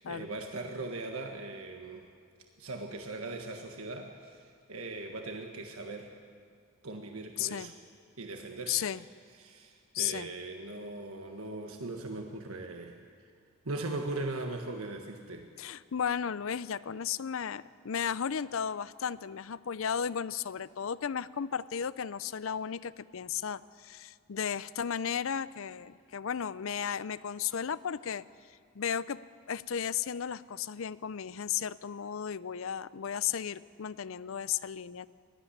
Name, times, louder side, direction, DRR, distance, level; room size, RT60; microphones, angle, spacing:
voice 1, 0.0-2.1 2.6-6.1 6.8-7.7 8.2-8.8 9.4-12.9 13.6-15.5, right 2 dB, 80° right, 3 dB, 1.4 m, -39 dB
voice 2, 7.4-7.7 8.7-9.0 9.9-10.3 15.6-29.2 29.5-35.1, left 8 dB, 70° left, 18 dB, 0.5 m, -34 dB
20.0 x 13.5 x 10.0 m, 2.1 s
head